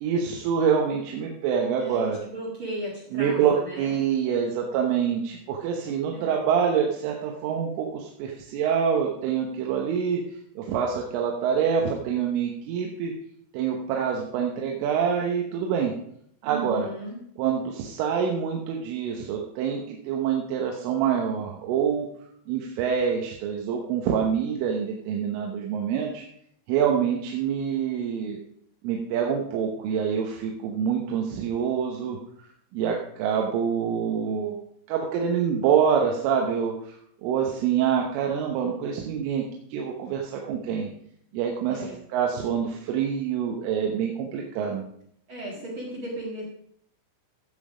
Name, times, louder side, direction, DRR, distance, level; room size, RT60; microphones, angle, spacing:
voice 1, 0.0-2.2 3.1-10.2 10.6-13.1 13.5-15.9 16.4-16.9 17.4-22.1 22.5-26.2 26.7-28.4 28.8-32.2 32.7-34.6 34.9-39.4 39.7-40.9 41.3-44.8, right 7 dB, 85° right, 1 dB, 3.7 m, -26 dB
voice 2, 1.8-4.0 6.1-6.4 16.4-17.2 41.7-42.0 45.3-46.4, right 1 dB, 70° right, -4 dB, 1.2 m, -36 dB
15.5 x 7.5 x 5.0 m, 0.69 s
omnidirectional pair, 5.6 m